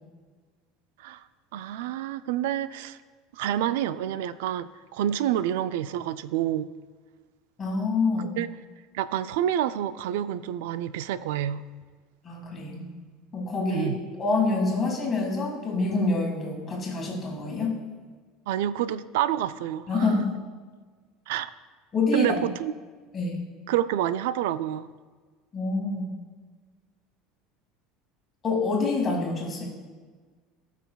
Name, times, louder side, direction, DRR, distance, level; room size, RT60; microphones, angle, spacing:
voice 1, 1.5-3.0 3.3-6.7 8.2-8.5 8.9-11.6 13.7-14.0 18.5-20.1 21.3-21.5 22.1-22.7 23.7-24.9, right 11 dB, 85° right, 14 dB, 0.3 m, -28 dB
voice 2, 7.6-8.3 12.2-12.9 13.3-13.9 14.2-17.7 19.9-20.3 21.9-22.3 23.1-23.4 25.5-26.0 28.4-29.7, left 3 dB, 25° left, -2 dB, 1.9 m, -26 dB
16.0 x 5.8 x 2.3 m, 1.5 s
cardioid pair, 155°, 0 cm